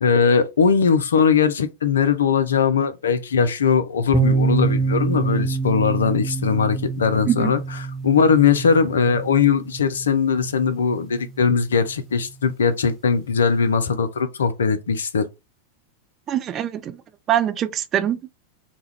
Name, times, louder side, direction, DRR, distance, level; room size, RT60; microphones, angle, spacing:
voice 1, 0.0-7.6 8.0-15.3, left 6 dB, 65° left, 0.4 m, -20 dB
sound 1, 4.1-11.8, right 4 dB, 5° right, 0.8 m, -26 dB
voice 2, 16.3-17.0 17.3-18.4, right 10 dB, 30° right, 0.3 m, -23 dB
2.3 x 2.1 x 3.3 m
figure-of-eight pair, 90°, 0 cm